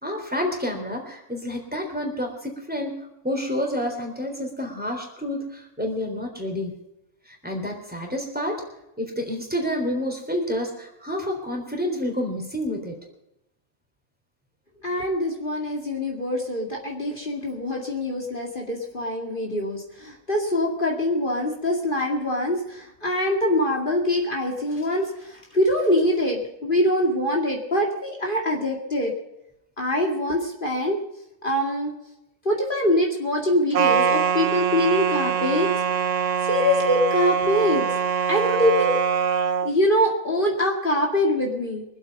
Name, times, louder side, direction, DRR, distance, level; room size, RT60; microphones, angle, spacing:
voice 1, 0.0-2.9 3.2-6.8 7.3-8.6 9.0-13.0, left 1 dB, 5° right, 1 dB, 3.7 m, -29 dB
voice 2, 14.8-29.1 29.8-31.0 31.4-31.9 32.4-35.7 36.4-37.8 38.3-39.0 39.6-41.8, left 1 dB, 45° left, 0 dB, 2.4 m, -24 dB
sound 1, 33.7-39.7, right 7 dB, 80° right, 1.2 m, -23 dB
24.5 x 8.3 x 5.4 m, 0.88 s
omnidirectional pair, 1.3 m